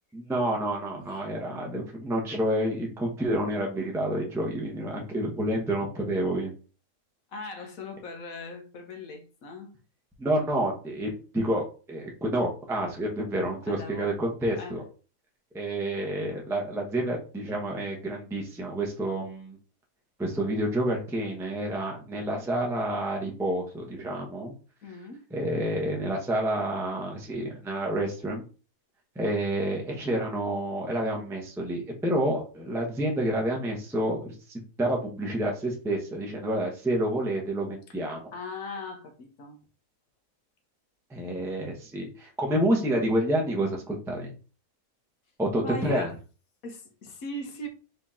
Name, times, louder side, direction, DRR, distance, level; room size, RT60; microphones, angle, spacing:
voice 1, 0.1-6.5 10.2-14.8 15.5-19.6 20.2-24.5 25.3-28.4 29.2-38.2 41.1-44.3 45.4-46.1, right 1 dB, ahead, 0.7 m, -29 dB
voice 2, 7.3-9.8 13.7-14.1 14.6-14.8 24.8-25.3 38.3-39.6 45.6-46.1 46.6-47.7, left 2 dB, 60° left, 1.3 m, -39 dB
4.6 x 2.9 x 3.6 m
omnidirectional pair, 1.7 m